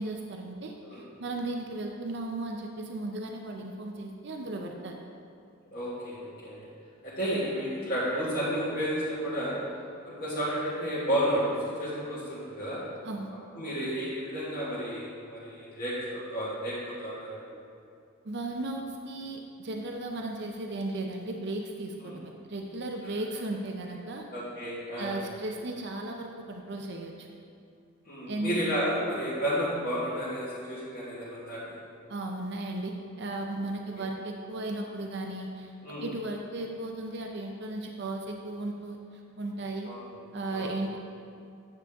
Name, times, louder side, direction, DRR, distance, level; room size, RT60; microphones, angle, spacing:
voice 1, 0.0-4.9 13.0-13.3 18.2-24.3 25.0-27.3 28.3-28.6 32.1-35.7 36.0-39.0 39.4-39.9 40.3-41.0, right 2 dB, 55° right, 2 dB, 0.6 m, -35 dB
voice 2, 5.7-6.6 7.0-9.6 10.0-11.4 11.8-12.8 13.5-17.4 22.0-22.2 24.3-25.1 28.1-31.7 33.9-34.1 35.8-36.1 39.8-40.7, equal, 45° left, -10 dB, 1.6 m, -32 dB
9.5 x 6.7 x 3.5 m, 2.5 s
head